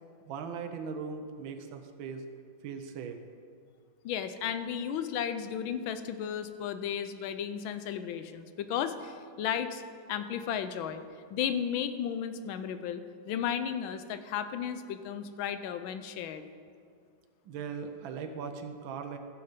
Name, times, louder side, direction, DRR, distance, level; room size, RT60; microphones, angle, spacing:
voice 1, 0.3-2.2 2.6-3.2 17.4-19.2, right 6 dB, 80° right, 6 dB, 1.5 m, -39 dB
voice 2, 4.0-9.8 10.1-11.0 11.3-16.4, left 8 dB, 85° left, 10 dB, 1.5 m, -34 dB
15.0 x 6.5 x 5.2 m, 2.2 s
omnidirectional pair, 2.1 m